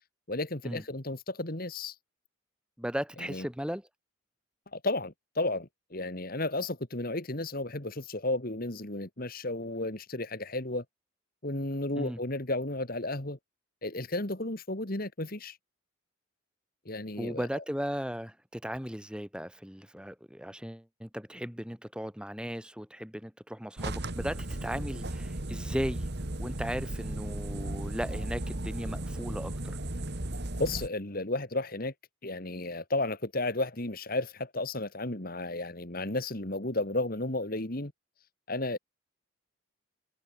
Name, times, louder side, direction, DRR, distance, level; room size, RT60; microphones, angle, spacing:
voice 1, 0.3-1.9 3.2-3.5 4.7-10.8 11.4-13.4 13.8-15.6 16.9-17.6 30.6-31.9 32.2-37.9 38.5-38.8, left 2 dB, 45° left, 2.3 m, -33 dB
voice 2, 2.8-3.8 12.0-12.2 17.2-26.1 26.4-29.8, equal, 5° right, 3.4 m, -37 dB
sound 1, 23.8-30.9, right 1 dB, 50° right, 1.9 m, -35 dB
head